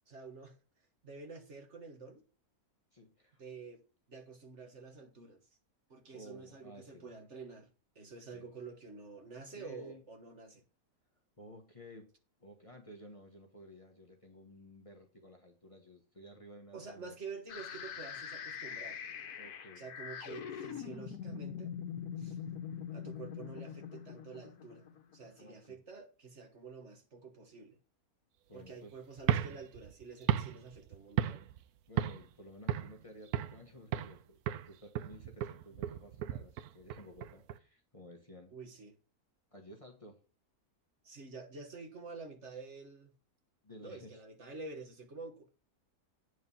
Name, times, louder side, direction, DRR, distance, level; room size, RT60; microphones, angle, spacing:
voice 1, 0.1-0.6 1.0-2.2 3.4-3.8 4.1-5.4 5.9-10.6 16.7-19.0 19.8-21.7 22.2-22.4 22.9-24.9 25.1-27.7 28.5-31.4 38.5-38.9 41.0-43.1 43.8-45.5, right 4 dB, 50° right, 1.6 m, -49 dB
voice 2, 2.9-3.4 6.1-7.1 8.3-8.5 9.5-10.0 11.4-12.1 12.4-17.1 19.4-19.9 25.4-25.8 28.5-28.9 31.9-38.5 39.5-40.2 43.6-44.2, equal, 25° left, 1.3 m, -54 dB
sound 1, 17.5-25.4, left 8 dB, 80° left, 1.4 m, -43 dB
sound 2, 29.2-31.6 32.0-32.3 32.7-33.6 33.9-34.2 34.5-37.6, right 11 dB, 80° right, 1.1 m, -35 dB
9.1 x 4.7 x 5.6 m
omnidirectional pair, 1.6 m